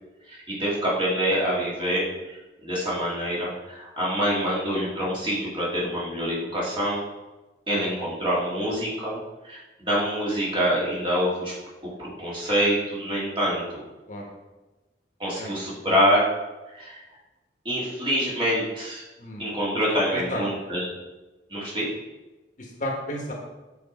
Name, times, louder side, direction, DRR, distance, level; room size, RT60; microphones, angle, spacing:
voice 1, 0.3-7.0 7.7-9.2 9.4-11.5 11.8-13.8 15.2-16.2 16.7-17.0 17.6-19.0 19.4-20.9 21.5-21.9, equal, 30° right, -6 dB, 2.2 m, -26 dB
voice 2, 15.4-16.0 19.2-19.5 20.1-20.4 22.6-23.3, left 1 dB, 45° left, 0 dB, 1.3 m, -33 dB
7.0 x 4.7 x 4.2 m, 1.1 s
head